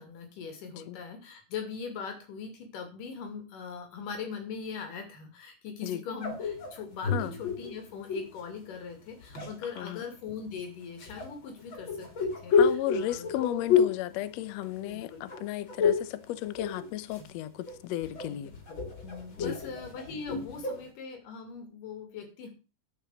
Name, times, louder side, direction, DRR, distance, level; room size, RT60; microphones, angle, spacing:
voice 1, 0.0-13.7 14.8-15.3 18.3-22.5, left 6 dB, 70° left, 4.0 m, -41 dB
sound 1, 6.2-8.4 9.1-9.9 11.0-15.0 15.3-16.2 16.4-17.3 17.7-20.9, left 6 dB, 40° left, 2.8 m, -30 dB
voice 2, 12.5-18.5 19.4-19.6, left 13 dB, 85° left, 1.5 m, -34 dB
12.0 x 5.7 x 6.4 m
omnidirectional pair, 4.1 m